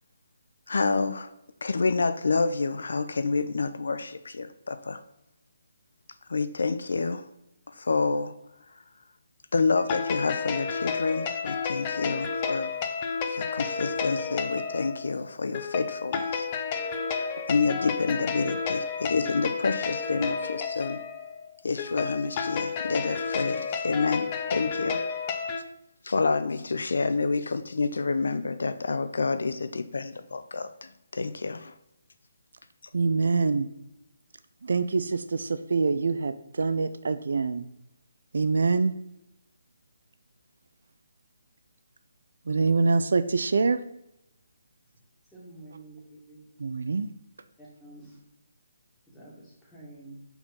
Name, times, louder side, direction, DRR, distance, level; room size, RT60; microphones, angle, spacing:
voice 1, 0.7-1.3 1.6-5.0 6.3-7.3 7.7-8.3 9.5-12.7 13.3-16.5 17.5-21.0 21.6-25.0 26.0-31.7, left 4 dB, 65° left, 11 dB, 0.4 m, -28 dB
sound 1, 9.8-25.6, left 5 dB, 30° left, 0.7 m, -31 dB
voice 2, 32.9-33.7 34.6-37.7 38.3-38.9 42.5-43.8 46.6-47.1, right 4 dB, 60° right, 11 dB, 0.4 m, -25 dB
voice 3, 45.3-46.4 47.6-48.2 49.1-50.2, right 2 dB, 5° left, -7 dB, 2.3 m, -48 dB
5.8 x 4.1 x 5.4 m, 0.86 s
figure-of-eight pair, 145°, 0 cm